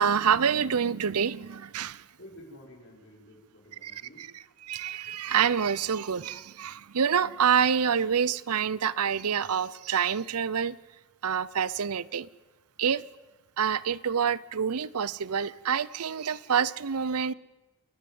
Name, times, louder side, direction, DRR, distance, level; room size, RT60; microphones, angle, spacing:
voice 1, 0.0-2.0 3.8-4.3 4.6-10.8 11.2-12.3 12.8-13.0 13.6-17.3, right 7 dB, 85° right, 20 dB, 0.7 m, -27 dB
voice 2, 2.2-4.3, equal, 55° left, -1 dB, 6.0 m, -50 dB
29.5 x 10.5 x 9.5 m, 1.1 s
head